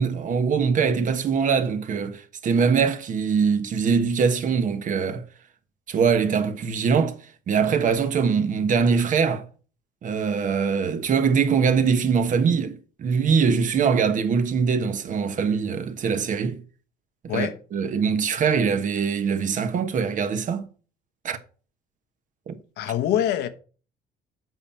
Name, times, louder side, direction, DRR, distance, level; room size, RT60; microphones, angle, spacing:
voice 1, 0.0-5.2 5.9-7.2 7.5-9.4 10.0-16.6 17.3-20.7 21.2-21.4 22.5-22.6, right 6 dB, 50° right, 1.2 m, -22 dB
voice 2, 22.8-23.5, left 10 dB, 80° left, 1.0 m, -24 dB
8.0 x 5.6 x 5.7 m
cardioid pair, 110°, 17 cm